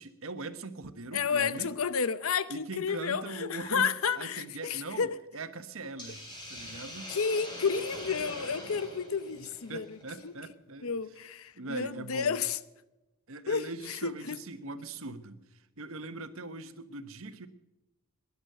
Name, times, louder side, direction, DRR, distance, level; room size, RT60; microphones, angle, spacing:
voice 1, 0.0-1.7 2.5-3.9 4.2-5.1 5.3-6.2 6.5-7.1 9.3-10.9 11.5-12.4 13.3-17.5, right 2 dB, 75° right, 1.2 m, -41 dB
voice 2, 1.1-5.2 7.1-10.0 10.2-10.3 10.8-12.6 13.5-14.4, left 6 dB, 75° left, 0.8 m, -31 dB
Hiss, 6.0-10.3, left 1 dB, 20° left, 4.5 m, -43 dB
19.5 x 11.0 x 6.7 m
head